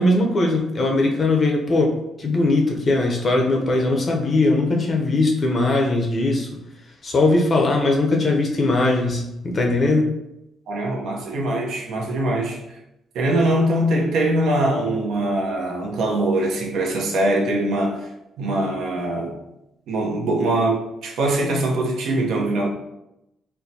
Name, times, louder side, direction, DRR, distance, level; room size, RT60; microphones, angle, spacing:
voice 1, 0.0-6.5 7.0-10.1, left 2 dB, 40° left, 2 dB, 0.7 m, -20 dB
voice 2, 10.7-12.6 13.1-18.1 18.4-19.4 19.9-22.7, right 1 dB, 80° right, -1 dB, 0.7 m, -22 dB
4.3 x 2.2 x 2.7 m, 0.88 s
cardioid pair, 90°, 0 cm